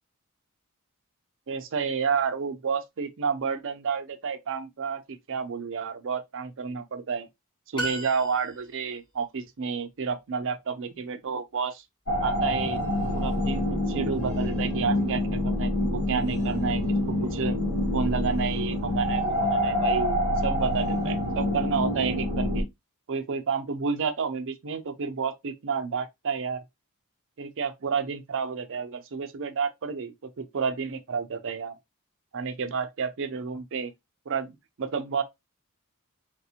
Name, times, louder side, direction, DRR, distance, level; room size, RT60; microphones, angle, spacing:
voice 1, 1.5-5.0 5.3-7.3 7.7-11.8 12.2-12.8 13.1-16.8 17.1-17.6 17.9-22.7 23.1-26.6 27.4-31.7 32.3-33.9 34.3-35.2, right 5 dB, 60° right, 0.5 m, -30 dB
sound 1, 7.8-8.9, right 1 dB, 20° left, 1.1 m, -34 dB
sound 2, 12.1-22.6, left 1 dB, 80° left, 1.4 m, -27 dB
3.3 x 2.6 x 2.8 m
head